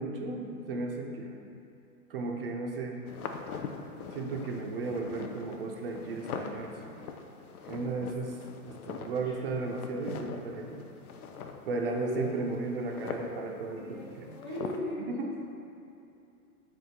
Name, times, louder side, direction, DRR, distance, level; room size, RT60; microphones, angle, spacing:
voice 1, 0.0-1.4 2.1-3.0 4.1-7.0 7.7-8.3 8.6-10.8 11.7-14.3 15.1-15.3, right 3 dB, 40° right, 1 dB, 0.5 m, -35 dB
sound 1, 3.1-14.8, left 5 dB, 70° left, 0.5 m, -43 dB
voice 2, 7.6-7.9 11.8-12.2 13.8-15.3, equal, 20° left, -9 dB, 0.3 m, -38 dB
3.6 x 3.4 x 4.2 m, 2.7 s
figure-of-eight pair, 115°, 46 cm